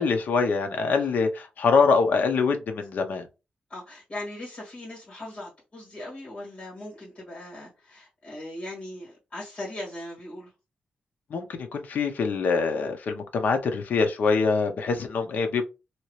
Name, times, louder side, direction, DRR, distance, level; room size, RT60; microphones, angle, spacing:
voice 1, 0.0-3.3 11.3-11.5 11.7-15.7, left 4 dB, 70° left, 0.7 m, -24 dB
voice 2, 3.7-10.5, left 1 dB, 35° left, 1.9 m, -39 dB
2.9 x 2.9 x 3.0 m
wide cardioid pair, 170°, 3 cm